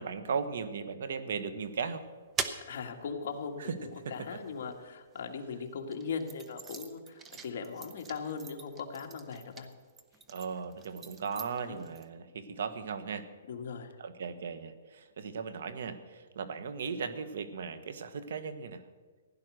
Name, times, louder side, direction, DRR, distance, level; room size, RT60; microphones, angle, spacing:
voice 1, 0.0-2.0 3.6-3.7 10.3-13.3 14.0-18.8, right 6 dB, 60° right, 12 dB, 1.4 m, -37 dB
sound 1, 1.6-5.2 5.8-12.1, right 5 dB, 10° right, 0.7 m, -44 dB
voice 2, 2.7-9.7 11.7-11.8 13.5-14.0, left 5 dB, 50° left, 3 dB, 1.9 m, -39 dB
16.0 x 10.5 x 6.4 m, 1.5 s
hypercardioid pair, 170°, 0 cm